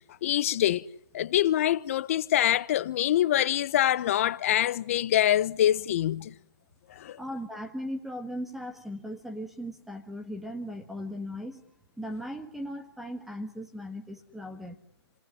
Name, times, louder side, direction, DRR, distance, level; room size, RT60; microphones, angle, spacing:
voice 1, 0.2-0.9 1.1-6.3 6.9-7.2, left 12 dB, 30° left, 1.1 m, -25 dB
voice 2, 7.2-11.6 12.0-14.8, equal, ahead, 1.6 m, -38 dB
30.0 x 18.5 x 9.9 m
figure-of-eight pair, 150°, 14 cm